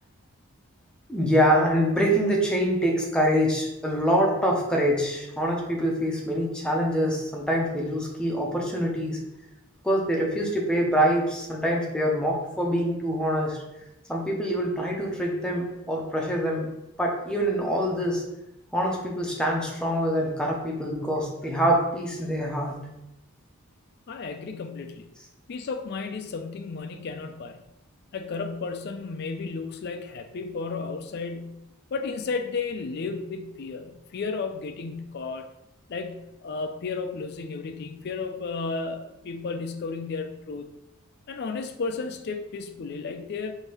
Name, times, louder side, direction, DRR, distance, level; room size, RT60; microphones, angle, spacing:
voice 1, 1.1-9.2 9.8-13.6 14.1-16.7 17.0-18.2 18.7-22.8, equal, 5° left, -1 dB, 0.6 m, -25 dB
voice 2, 24.1-25.1 25.5-27.6 28.1-31.6 31.9-35.5 35.9-40.7 41.3-43.5, left 4 dB, 45° left, 7 dB, 0.4 m, -33 dB
4.6 x 2.7 x 3.0 m, 0.90 s
head